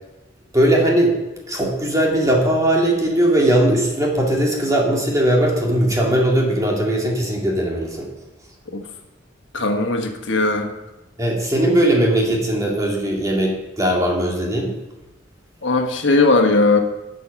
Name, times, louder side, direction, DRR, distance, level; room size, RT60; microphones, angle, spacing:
voice 1, 0.5-1.2 1.5-8.1 11.2-14.7, right 1 dB, 20° right, -1 dB, 2.2 m, -19 dB
voice 2, 9.5-10.7 15.6-16.8, left 3 dB, 90° left, 4 dB, 1.3 m, -18 dB
11.0 x 6.4 x 5.8 m, 1.0 s
head